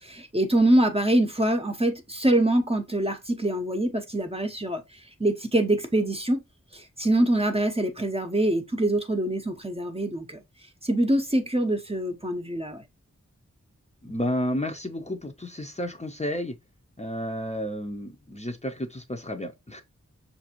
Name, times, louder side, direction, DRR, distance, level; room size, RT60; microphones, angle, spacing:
voice 1, 0.0-4.8 5.2-6.4 6.7-10.4 10.8-12.8, right 1 dB, 20° right, 0.7 m, -24 dB
voice 2, 14.0-16.5 17.0-19.8, equal, 25° left, 0.7 m, -31 dB
5.7 x 2.6 x 2.9 m
wide cardioid pair, 45°, 29 cm